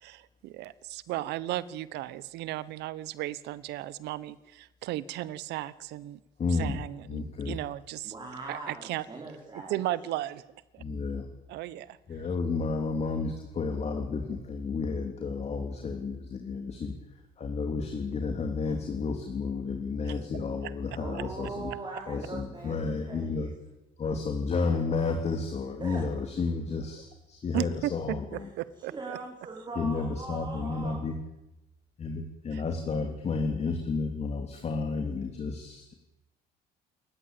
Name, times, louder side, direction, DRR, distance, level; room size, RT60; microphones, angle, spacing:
voice 1, 0.0-6.2 6.6-8.1 8.5-9.0 9.5-10.8 11.5-12.0 20.0-20.1 20.6-20.7 27.5-27.9 28.3-29.2 32.5-32.6 33.0-33.1, right 15 dB, 85° right, 17 dB, 1.1 m, -35 dB
voice 2, 6.4-7.6 10.8-11.3 12.1-21.7 22.1-23.5 24.0-28.5 29.7-31.1 32.0-35.9, left 4 dB, 40° left, 4 dB, 3.0 m, -32 dB
voice 3, 8.0-9.7 21.0-22.8 23.0-23.5 25.8-26.0 28.9-31.0, right 3 dB, 25° right, -1 dB, 4.7 m, -40 dB
28.5 x 14.0 x 8.9 m, 0.96 s
cardioid pair, 110°, 17 cm